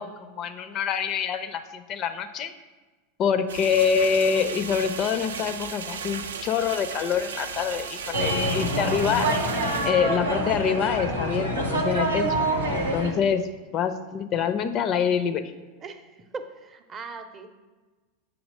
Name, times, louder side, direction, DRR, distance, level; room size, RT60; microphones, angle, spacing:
voice 1, 0.0-2.5 3.2-9.3 9.8-12.4 12.7-13.4 13.7-15.5, left 7 dB, 40° left, 10 dB, 0.4 m, -26 dB
sound 1, 3.5-9.9, right 6 dB, 75° right, 0.3 m, -36 dB
sound 2, 8.1-13.1, right 1 dB, 90° right, 0.7 m, -26 dB
voice 2, 15.8-17.5, right 4 dB, 30° right, 7 dB, 0.6 m, -39 dB
7.2 x 2.9 x 5.2 m, 1.3 s
figure-of-eight pair, 90°, 0 cm